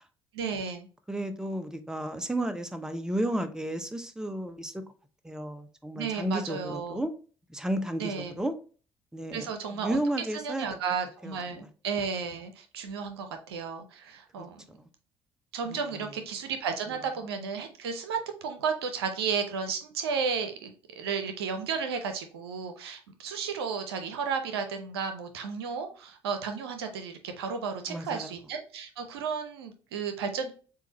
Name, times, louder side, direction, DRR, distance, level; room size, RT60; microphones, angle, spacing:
voice 1, 0.3-0.9 6.0-7.0 8.0-8.3 9.3-14.6 15.5-30.5, right 6 dB, 85° right, 0.6 m, -33 dB
voice 2, 1.1-4.8 5.2-7.1 7.5-8.5 9.1-10.8 11.2-11.7 14.4-14.9 15.6-15.9 27.9-28.4, right 1 dB, 5° right, 0.7 m, -33 dB
7.0 x 2.5 x 2.8 m
hypercardioid pair, 50°, 13 cm